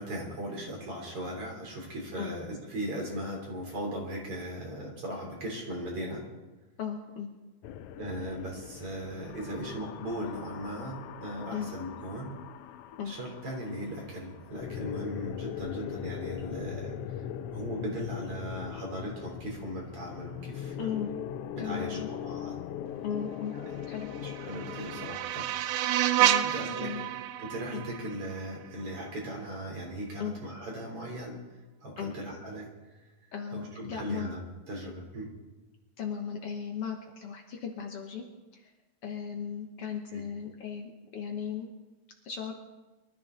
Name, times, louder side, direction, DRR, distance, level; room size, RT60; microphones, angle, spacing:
voice 1, 0.0-6.2 8.0-12.3 13.1-20.9 21.5-22.6 24.2-25.9 26.4-26.9 27.4-31.4 31.8-32.7 32.9-33.1 33.5-34.4 34.7-35.3 40.1-40.2, right 1 dB, 50° right, -1 dB, 4.4 m, -38 dB
voice 2, 6.8-7.3 11.5-11.7 13.0-13.1 20.8-21.1 21.6-22.1 23.0-23.5 23.9-24.1 26.2-27.1 27.7-27.8 30.2-30.3 32.0-32.1 33.3-34.3 36.0-38.2 38.5-38.7 39.0-41.7 42.3-42.5, left 7 dB, 60° left, 2 dB, 2.0 m, -36 dB
sound 1, 7.6-25.1, left 10 dB, 80° left, 1.3 m, -40 dB
sound 2, 23.9-29.0, right 12 dB, 75° right, 1.7 m, -30 dB
23.5 x 13.0 x 3.9 m, 1.1 s
omnidirectional pair, 3.3 m